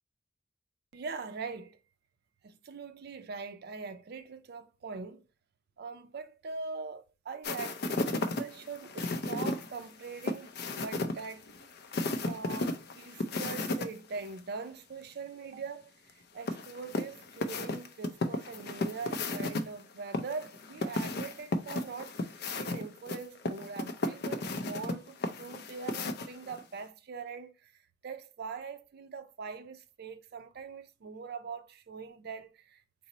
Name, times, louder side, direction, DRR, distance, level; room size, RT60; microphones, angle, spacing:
voice 1, 0.9-1.8 2.4-5.3 5.8-10.5 10.8-11.5 12.0-32.8, right 5 dB, 55° right, 0.4 m, -42 dB
sound 1, 7.4-13.9 14.2-14.3 16.5-19.6 20.1-26.6, left 2 dB, 55° left, 0.4 m, -34 dB
4.0 x 2.0 x 3.8 m
head